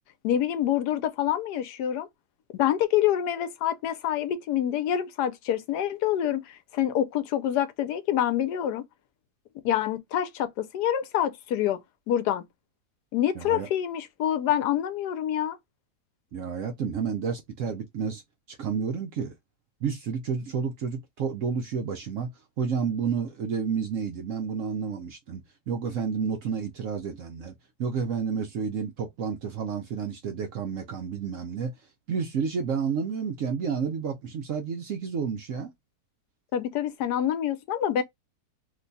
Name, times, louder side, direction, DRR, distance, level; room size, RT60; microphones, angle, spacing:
voice 1, 0.2-2.1 2.5-8.8 9.6-11.8 12.1-12.4 13.1-15.6 36.5-38.0, left 11 dB, 90° left, 1.2 m, -26 dB
voice 2, 13.3-13.7 16.3-18.2 18.5-19.3 19.8-22.3 22.6-27.5 27.8-31.7 32.1-35.7, right 6 dB, 65° right, 0.9 m, -30 dB
3.0 x 2.2 x 3.9 m
omnidirectional pair, 1.7 m